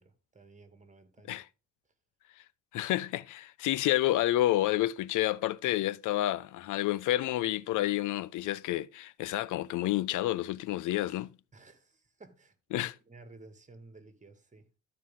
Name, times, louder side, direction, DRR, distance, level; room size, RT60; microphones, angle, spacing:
voice 1, 0.0-1.4 11.5-14.7, right 3 dB, 25° right, 2.1 m, -55 dB
voice 2, 2.7-11.3 12.7-12.9, left 15 dB, 80° left, 0.5 m, -29 dB
13.5 x 4.8 x 3.7 m
cardioid pair, 90°, 30 cm